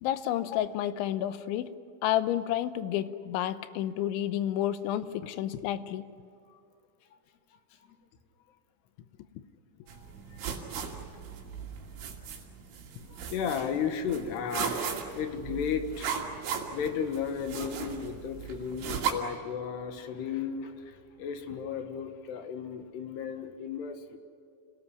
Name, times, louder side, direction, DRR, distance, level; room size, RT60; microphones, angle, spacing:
voice 1, 0.0-1.7 2.0-6.1, left 12 dB, 90° left, 12 dB, 3.2 m, -30 dB
voice 2, 9.9-11.2 13.1-24.2, left 7 dB, 70° left, 7 dB, 3.4 m, -35 dB
sound 1, 9.9-19.1, right 7 dB, 85° right, 4.8 m, -37 dB
29.0 x 18.0 x 9.9 m, 2.4 s
omnidirectional pair, 5.3 m